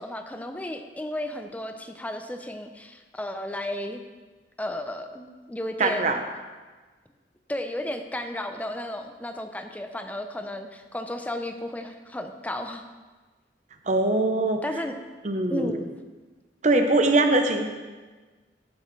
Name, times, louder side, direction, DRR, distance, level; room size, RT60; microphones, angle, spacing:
voice 1, 0.0-4.0 4.6-6.2 7.5-12.8 14.6-14.9 15.5-15.9, left 1 dB, 10° left, 6 dB, 0.5 m, -33 dB
voice 2, 5.8-6.2 13.9-14.6 15.2-15.7 16.6-17.7, right 2 dB, 40° right, 6 dB, 0.8 m, -22 dB
14.0 x 6.4 x 3.2 m, 1.3 s
head